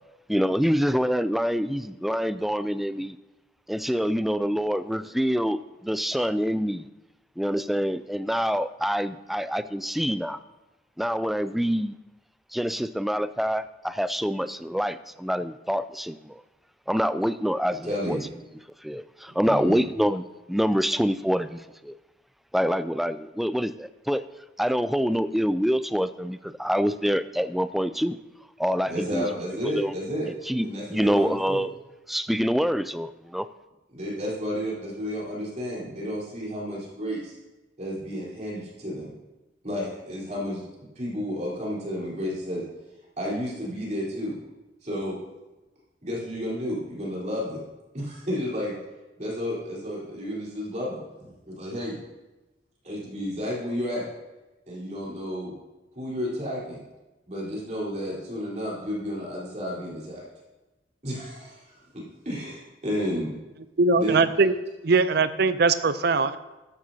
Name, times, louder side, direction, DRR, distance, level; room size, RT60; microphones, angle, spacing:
voice 1, 0.3-3.2 3.7-6.9 7.4-10.4 11.0-11.9 12.5-16.4 16.9-18.2 18.8-22.0 22.5-24.2 24.6-28.2 28.6-29.3 29.6-30.0 30.3-31.7 32.1-33.5, equal, ahead, 13 dB, 0.3 m, -26 dB
voice 2, 17.8-18.2 19.4-19.8 28.8-30.3 30.6-31.6 33.9-37.4 37.8-39.1 39.6-40.6 41.0-42.6 43.2-44.3 44.8-45.2 46.0-47.6 47.9-48.7 49.2-51.0 51.4-51.9 52.8-54.0 54.7-55.5 56.0-56.8 57.3-60.3 61.0-61.8 62.3-63.3 63.9-64.2, equal, 40° right, -6 dB, 4.0 m, -31 dB
voice 3, 63.8-64.5 64.8-66.4, right 4 dB, 60° right, 13 dB, 0.5 m, -21 dB
13.5 x 11.5 x 2.8 m, 1.1 s
head